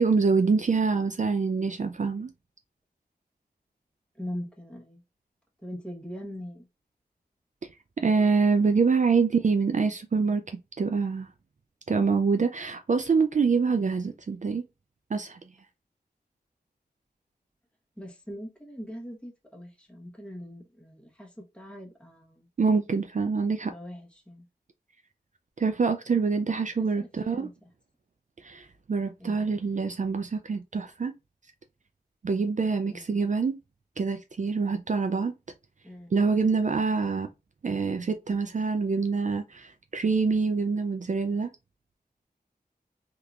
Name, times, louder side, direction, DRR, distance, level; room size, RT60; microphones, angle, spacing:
voice 1, 0.0-2.3 8.0-11.3 11.9-14.7 15.1-15.4 22.6-23.7 25.6-27.5 28.4-31.2 32.2-33.6 34.0-35.3 36.1-37.3 37.6-41.5, right 4 dB, 50° right, 0.4 m, -25 dB
voice 2, 4.2-5.0 5.6-6.7 18.0-22.5 23.6-24.4 27.0-27.7 29.2-29.4 32.9-33.1 35.8-36.1, equal, 5° left, 1.1 m, -41 dB
3.6 x 2.8 x 2.4 m
wide cardioid pair, 65°, 17 cm